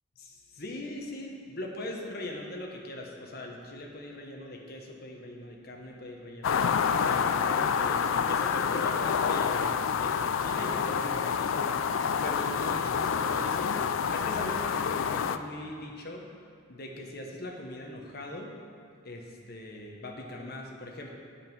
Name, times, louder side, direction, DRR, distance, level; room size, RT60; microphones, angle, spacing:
voice 1, 0.2-6.7 7.0-13.8 14.1-16.2 16.7-18.5 19.0-21.1, left 1 dB, 50° left, 0 dB, 1.2 m, -40 dB
sound 1, 6.4-15.4, left 7 dB, 75° left, 0.4 m, -28 dB
8.9 x 7.1 x 5.5 m, 2.2 s
head